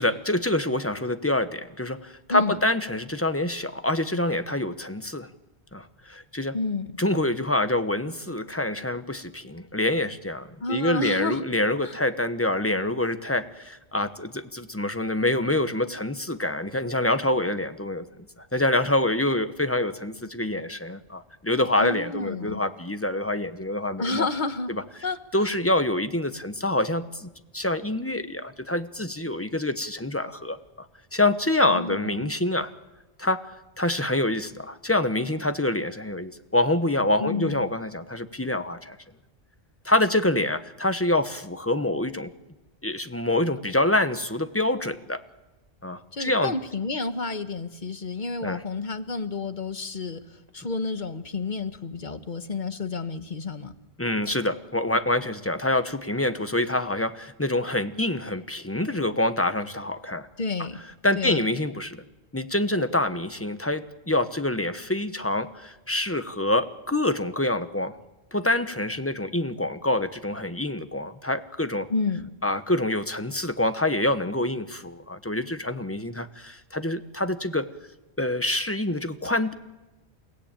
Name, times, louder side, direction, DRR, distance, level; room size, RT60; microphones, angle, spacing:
voice 1, 0.0-5.3 5.7-6.6 7.0-18.0 18.5-24.3 24.7-24.8 25.3-30.9 31.1-32.7 33.2-33.4 33.8-39.0 39.8-42.3 42.8-45.2 45.8-46.5 48.4-48.6 54.0-60.3 61.0-62.0 62.3-67.9 68.3-71.9 72.4-77.7 78.2-79.5, left 1 dB, 15° left, 10 dB, 1.1 m, -26 dB
voice 2, 6.5-7.0 10.6-11.4 11.8-11.9 21.8-22.6 24.0-24.7 25.0-25.5 31.6-32.3 37.2-37.6 46.1-50.2 50.5-53.7 60.4-60.8 61.2-61.4 71.9-72.3, left 3 dB, 45° left, 10 dB, 1.3 m, -30 dB
29.5 x 17.0 x 9.0 m, 1.1 s
omnidirectional pair, 1.1 m